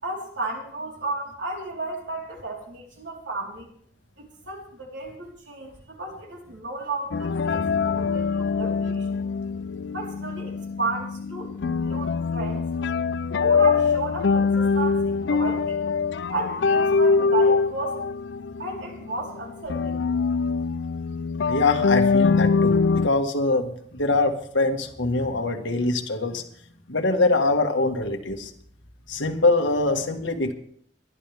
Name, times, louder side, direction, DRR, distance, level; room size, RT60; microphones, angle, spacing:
voice 1, 0.0-3.7 4.2-9.2 9.9-12.7 13.4-15.8 16.3-18.0 18.6-20.0, right 3 dB, 70° right, -1 dB, 4.1 m, -33 dB
sound 1, 7.1-23.1, left 5 dB, 70° left, 0.5 m, -23 dB
voice 2, 21.5-26.4 26.9-28.5 29.1-30.5, left 3 dB, 85° left, 5 dB, 1.8 m, -23 dB
22.5 x 11.5 x 3.6 m, 0.63 s
head